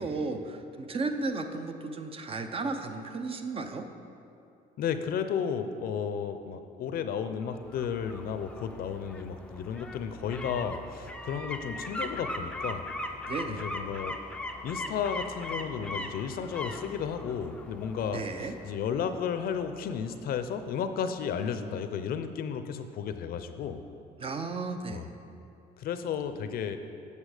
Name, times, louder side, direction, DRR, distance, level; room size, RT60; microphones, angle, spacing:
voice 1, 0.0-3.9 13.3-13.6 18.1-18.6 24.2-25.1, right 3 dB, 35° right, 7 dB, 0.6 m, -34 dB
voice 2, 4.8-12.8 13.5-14.2 14.6-23.8 24.9-25.1 25.8-26.8, left 7 dB, 60° left, 9 dB, 0.6 m, -33 dB
sound 1, 7.4-20.3 20.6-20.7, left 1 dB, 5° left, 0.5 m, -40 dB
8.2 x 7.0 x 5.0 m, 2.6 s
cardioid pair, 110°, 17 cm